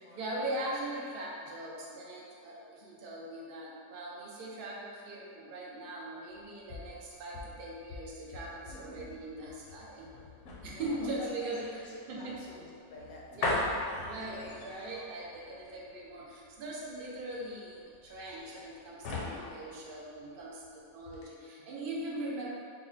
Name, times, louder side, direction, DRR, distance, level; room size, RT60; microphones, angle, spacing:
voice 1, 0.0-10.1 10.6-11.6 12.1-12.4 13.3-13.7 14.0-22.5, right 1 dB, 60° right, -4 dB, 0.6 m, -40 dB
sound 1, 6.3-20.7 21.0-21.2, left 2 dB, 60° left, 0.9 m, -40 dB
voice 2, 8.7-9.1 10.6-13.7 19.6-19.8 21.6-21.7, left 1 dB, 80° left, -4 dB, 1.1 m, -49 dB
3.9 x 2.0 x 3.8 m, 2.3 s
omnidirectional pair, 1.5 m